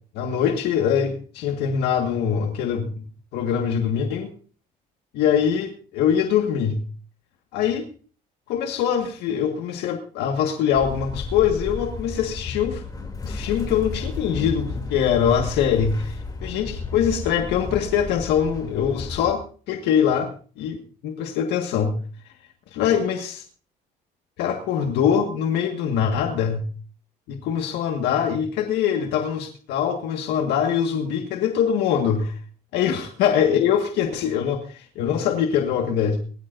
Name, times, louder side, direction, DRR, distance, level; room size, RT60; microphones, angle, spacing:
voice 1, 0.2-2.9 3.3-4.3 5.1-6.8 7.5-7.9 8.5-12.8 13.2-16.2 16.4-19.4 19.7-20.3 20.6-20.8 21.0-22.0 22.7-23.4 24.4-26.6 27.3-32.4 32.7-36.2, left 8 dB, 85° left, 3 dB, 1.8 m, -23 dB
sound 1, 10.7-19.3, left 3 dB, 20° left, 3.0 m, -32 dB
21.0 x 13.5 x 2.7 m, 0.40 s
cardioid pair, 110°, 17 cm